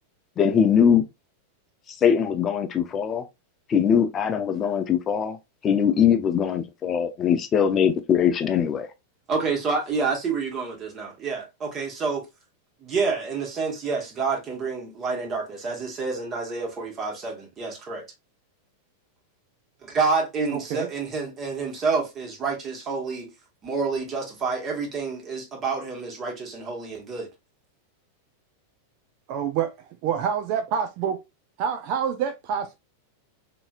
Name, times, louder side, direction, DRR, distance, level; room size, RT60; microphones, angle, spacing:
voice 1, 0.4-1.0 2.0-3.2 3.7-5.4 5.6-8.9, left 8 dB, 30° left, 0.5 m, -21 dB
voice 2, 9.3-12.2 12.8-18.0 19.8-23.3 23.6-27.3, right 4 dB, 35° right, 1.3 m, -28 dB
voice 3, 20.5-20.9 29.3-29.7 30.0-31.2 31.6-32.7, right 8 dB, 50° right, 0.4 m, -27 dB
2.9 x 2.7 x 2.3 m
hypercardioid pair, 100°, 0 cm